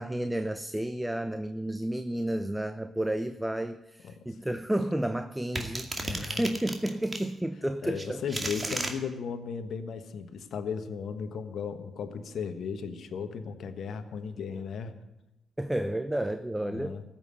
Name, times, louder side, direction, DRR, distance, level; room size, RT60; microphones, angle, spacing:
voice 1, 0.0-8.5 15.6-17.0, right 1 dB, 10° right, 11 dB, 0.7 m, -31 dB
sound 1, 5.6-7.3 8.0-8.9, right 2 dB, 30° right, 2.2 m, -34 dB
voice 2, 6.0-6.4 7.8-14.9 16.6-17.0, left 6 dB, 60° left, 10 dB, 1.2 m, -36 dB
14.5 x 7.4 x 9.8 m, 0.95 s
hypercardioid pair, 40°, 0 cm